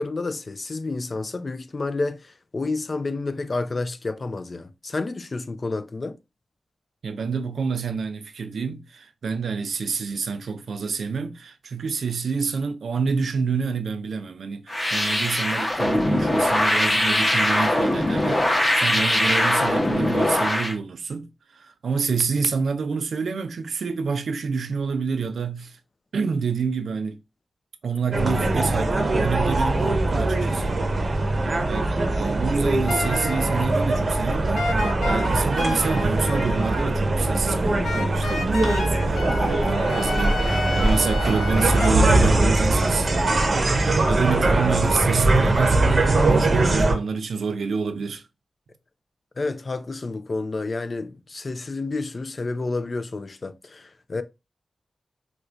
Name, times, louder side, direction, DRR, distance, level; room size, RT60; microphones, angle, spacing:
voice 1, 0.0-6.2 49.4-54.2, left 3 dB, 40° left, 0.3 m, -30 dB
voice 2, 7.0-25.8 26.1-27.2 27.8-31.4 31.7-48.3, right 5 dB, 85° right, 0.4 m, -28 dB
sound 1, 14.7-20.7, left 1 dB, 20° left, 0.8 m, -21 dB
sound 2, 28.1-46.9, right 2 dB, 40° right, 0.7 m, -21 dB
sound 3, 32.9-33.9 34.5-36.8 37.8-41.9, left 3 dB, 70° left, 0.7 m, -31 dB
4.3 x 2.2 x 2.4 m
wide cardioid pair, 130°, 0 cm